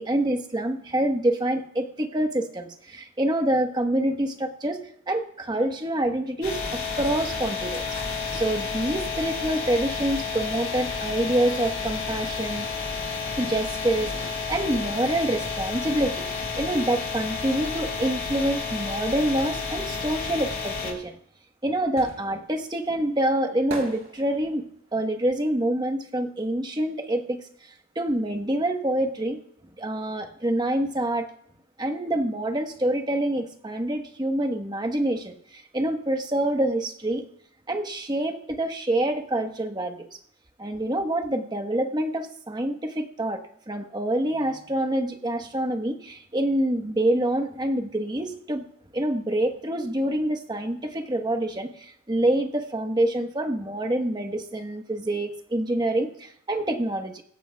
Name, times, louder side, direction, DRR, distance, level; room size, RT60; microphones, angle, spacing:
voice 1, 0.0-4.8 5.1-7.9 8.3-12.7 13.4-16.3 16.5-21.1 21.6-24.7 24.9-29.4 29.8-31.3 31.8-37.2 37.7-40.1 40.6-48.6 48.9-57.2, right 1 dB, 20° right, 4 dB, 1.1 m, -26 dB
sound 1, 6.4-20.9, left 4 dB, 60° left, 7.5 m, -31 dB
sound 2, 21.2-26.9 27.2-28.8 29.1-29.2, right 2 dB, 70° right, 4.4 m, -42 dB
24.5 x 14.0 x 2.3 m, 0.67 s
head